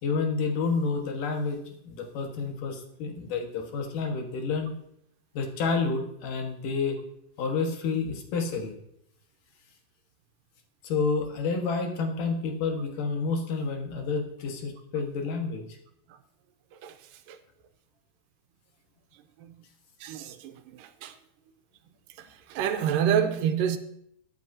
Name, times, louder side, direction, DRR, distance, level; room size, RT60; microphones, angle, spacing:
voice 1, 0.0-4.7 5.3-7.0 7.4-8.7 10.8-15.7, left 4 dB, 75° left, 3 dB, 3.1 m, -29 dB
voice 2, 20.0-21.1 22.5-23.8, right 8 dB, 90° right, 9 dB, 2.5 m, -27 dB
20.5 x 9.3 x 2.8 m, 0.73 s
omnidirectional pair, 3.8 m